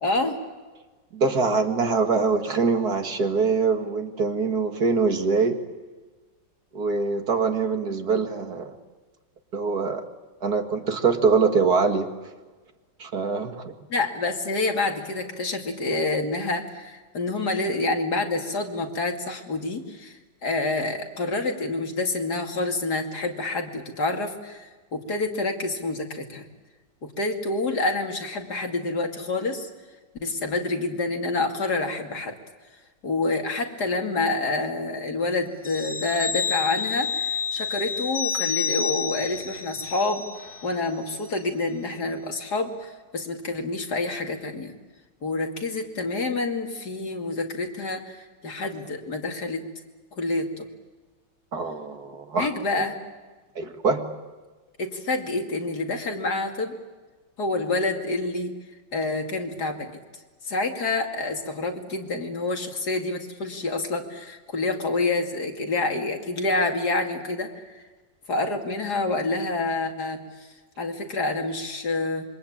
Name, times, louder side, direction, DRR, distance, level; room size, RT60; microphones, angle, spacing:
voice 1, 0.0-0.4 13.9-26.4 27.2-29.7 30.2-32.3 33.0-40.2 40.6-44.7 45.2-49.7 50.2-50.7 52.4-52.9 54.8-56.7 57.4-58.5 58.9-59.9 60.4-67.8 68.3-70.2 70.8-72.3, left 2 dB, 55° left, 3 dB, 3.1 m, -27 dB
voice 2, 1.1-5.6 6.7-8.8 9.5-10.0 10.4-12.1 13.0-13.7 51.5-52.5 53.6-54.0, right 4 dB, 55° right, 6 dB, 2.4 m, -23 dB
sound 1, 35.6-40.8 41.1-41.2, left 6 dB, 30° left, 1.2 m, -29 dB
26.5 x 23.5 x 8.8 m, 1.3 s
omnidirectional pair, 2.0 m